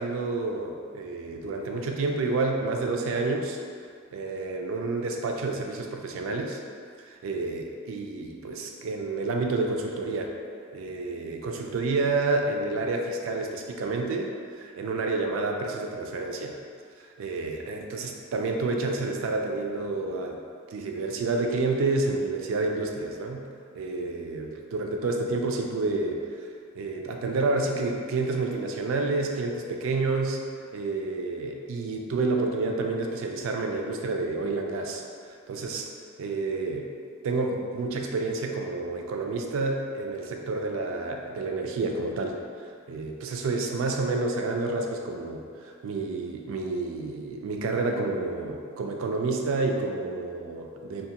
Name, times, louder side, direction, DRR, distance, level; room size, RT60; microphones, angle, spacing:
voice 1, 0.0-3.6 4.1-6.6 7.1-10.3 10.7-16.5 17.2-20.4 20.7-23.5 23.8-26.5 26.7-30.4 30.7-35.0 35.3-35.9 36.2-36.9 37.2-51.1, right 3 dB, 65° right, 2 dB, 0.3 m, -29 dB
2.8 x 2.3 x 2.7 m, 2.1 s
head